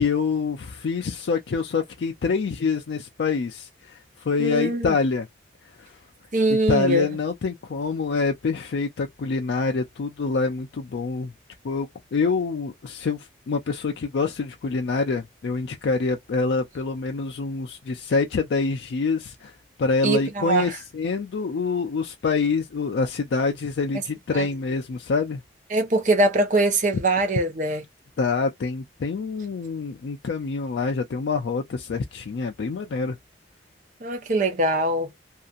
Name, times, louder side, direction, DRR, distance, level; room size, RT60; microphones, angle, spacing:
voice 1, 0.0-5.3 5.6-6.0 6.7-11.3 11.6-25.4 28.2-33.2, left 4 dB, 75° left, 0.4 m, -26 dB
voice 2, 4.4-5.0 6.3-7.1 20.0-20.8 24.3-24.5 25.7-27.8 34.0-35.1, right 2 dB, 45° right, 0.7 m, -22 dB
2.8 x 2.4 x 2.4 m
head